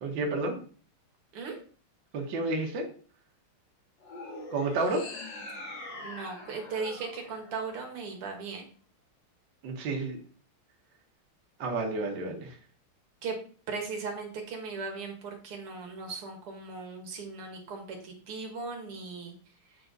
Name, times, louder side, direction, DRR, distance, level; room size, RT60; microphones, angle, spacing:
voice 1, 0.0-0.6 2.1-2.9 4.5-5.0 9.6-10.2 11.6-12.6, right 2 dB, 60° right, 2 dB, 1.7 m, -30 dB
sound 1, 4.0-8.4, left 2 dB, 55° left, 2.0 m, -43 dB
voice 2, 6.0-8.6 13.2-13.4 13.7-19.3, right 4 dB, 85° right, 3 dB, 2.2 m, -38 dB
8.0 x 3.8 x 3.9 m, 0.42 s
omnidirectional pair, 2.4 m